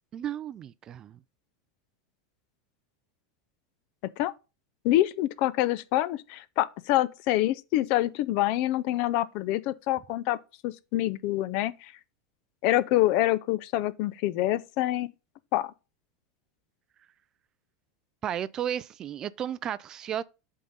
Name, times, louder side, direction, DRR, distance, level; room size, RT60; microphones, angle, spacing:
voice 1, 0.1-1.2 18.2-20.2, right 10 dB, 30° right, 0.3 m, -33 dB
voice 2, 4.8-10.4 10.6-11.9 12.6-15.1 15.5-15.7, left 15 dB, 50° left, 0.5 m, -26 dB
7.7 x 3.7 x 5.4 m
supercardioid pair, 145°, 2 cm